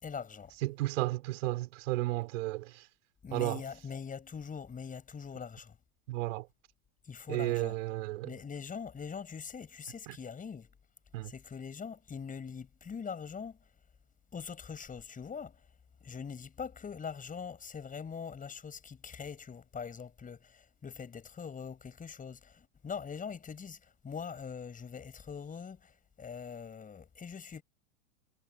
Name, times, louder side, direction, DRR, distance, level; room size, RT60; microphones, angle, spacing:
voice 1, 0.0-0.5 3.2-5.8 7.0-7.8 8.2-10.7 11.2-13.6 14.3-15.6 16.0-27.6, left 6 dB, 20° left, 6.4 m, -42 dB
voice 2, 0.6-2.9 3.3-3.6 6.1-6.5 7.3-8.3 10.1-10.2 11.1-11.3, right 19 dB, 60° right, 4.3 m, -33 dB
hypercardioid pair, 100°, 43 cm